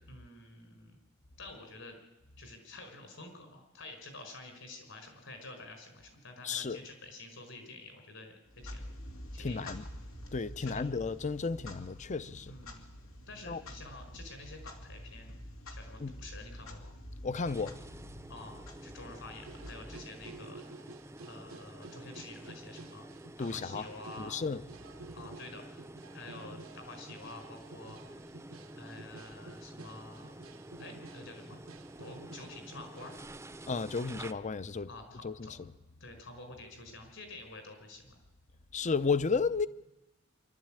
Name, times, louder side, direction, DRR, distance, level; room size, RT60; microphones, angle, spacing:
voice 1, 0.1-1.0 1.4-2.0 2.4-8.9 9.3-9.7 10.6-10.8 12.5-12.9 13.3-15.3 15.7-16.9 18.3-20.6 21.2-23.1 23.4-24.4 25.1-25.9 26.1-28.0 28.7-30.4 30.8-31.6 32.0-33.2 34.8-35.5 36.0-38.2, left 2 dB, 65° left, 5.1 m, -49 dB
voice 2, 6.4-6.8 9.4-9.8 10.3-12.5 13.5-13.6 16.0-16.1 17.2-17.8 23.4-23.9 24.2-24.6 33.7-34.9 35.2-35.5 38.7-39.7, left 4 dB, 35° left, 0.6 m, -33 dB
Clock, 8.5-20.4, left 1 dB, 85° left, 2.6 m, -48 dB
sound 1, 17.5-34.3, right 1 dB, 15° right, 0.6 m, -49 dB
sound 2, 19.4-33.2, right 3 dB, 75° right, 0.9 m, -53 dB
25.0 x 12.5 x 8.9 m
head